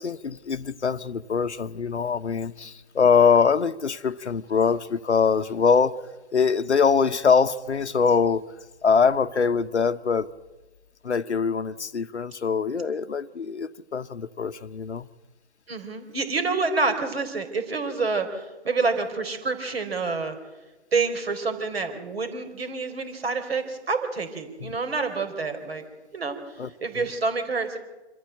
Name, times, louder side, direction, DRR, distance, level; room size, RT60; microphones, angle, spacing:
voice 1, 0.0-6.0 6.3-8.5 8.8-10.3 11.0-15.1 24.6-24.8 26.6-26.7, left 5 dB, 85° left, 10 dB, 0.9 m, -23 dB
voice 2, 15.7-20.4 20.9-25.8 26.1-26.4 26.8-27.8, right 4 dB, 60° right, 8 dB, 4.1 m, -27 dB
26.5 x 13.5 x 7.8 m, 1.2 s
figure-of-eight pair, 145°, 33 cm